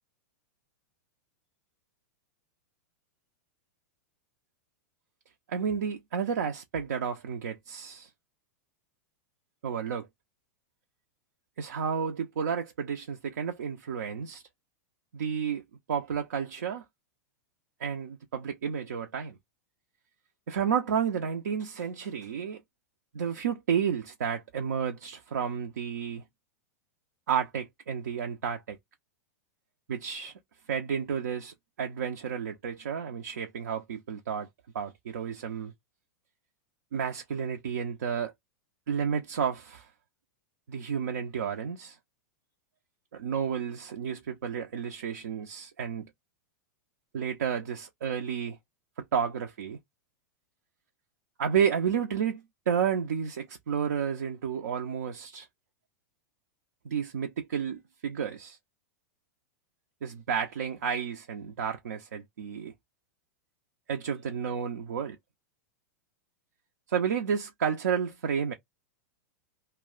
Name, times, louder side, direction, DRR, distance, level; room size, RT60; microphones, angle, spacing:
voice 1, 5.5-8.1 9.6-10.1 11.6-14.4 15.1-15.6 15.9-16.8 17.8-19.4 20.5-22.6 23.1-26.2 27.3-28.8 29.9-30.3 30.7-34.5 34.7-35.7 36.9-38.3 38.9-39.9 40.7-42.0 43.1-46.1 47.1-48.6 49.0-49.8 51.4-55.5 56.8-58.6 60.0-62.7 63.9-65.2 66.9-68.5, right 7 dB, 75° right, 0.4 m, -31 dB
2.3 x 2.1 x 3.6 m
hypercardioid pair, 100°, 9 cm